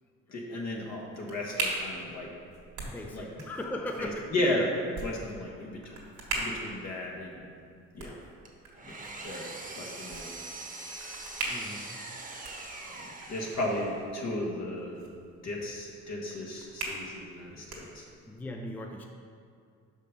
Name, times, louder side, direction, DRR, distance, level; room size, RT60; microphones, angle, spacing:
voice 1, 0.3-2.3 3.1-3.3 4.0-6.0 6.3-7.4 7.9-8.2 8.8-9.0 9.2-9.4 9.8-10.3 11.7-11.9 12.9-15.0 15.4-18.1, left 1 dB, 60° left, -1 dB, 1.5 m, -34 dB
sound 1, 0.7-18.4, right 2 dB, 75° right, 1.6 m, -41 dB
voice 2, 2.9-4.5 5.2-5.3 11.5-12.1 18.3-19.1, left 1 dB, 5° left, 2 dB, 0.5 m, -38 dB
Engine, 8.4-14.2, right 2 dB, 25° right, 1.0 m, -43 dB
5.7 x 5.3 x 5.2 m, 2.3 s
cardioid pair, 90°, 30 cm